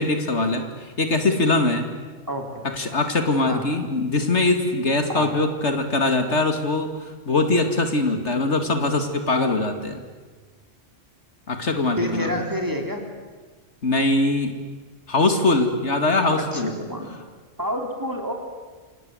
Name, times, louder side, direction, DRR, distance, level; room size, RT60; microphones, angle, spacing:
voice 1, 0.0-1.9 2.7-10.0 11.5-12.4 13.8-14.6 15.1-16.7, left 2 dB, 65° left, 6 dB, 2.5 m, -22 dB
voice 2, 12.0-13.0 16.4-17.1 17.6-18.3, equal, 15° right, 3 dB, 3.8 m, -28 dB
28.5 x 26.0 x 7.9 m, 1.4 s
omnidirectional pair, 1.3 m